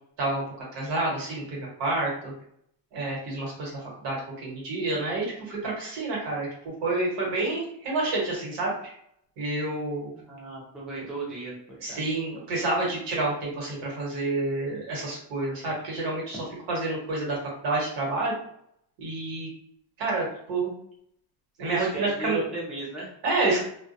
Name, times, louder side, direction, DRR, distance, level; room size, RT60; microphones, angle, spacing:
voice 1, 0.7-2.3 2.9-6.5 6.8-8.9 9.4-10.1 11.8-16.4 16.7-17.4 17.6-18.3 19.0-19.5 20.0-20.7 21.6-22.4 23.2-23.6, right 2 dB, 85° right, -3 dB, 1.2 m, -28 dB
voice 2, 10.1-12.0 21.7-23.1, right 2 dB, ahead, -6 dB, 0.4 m, -35 dB
2.3 x 2.1 x 2.6 m, 0.70 s
cardioid pair, 170°, 41 cm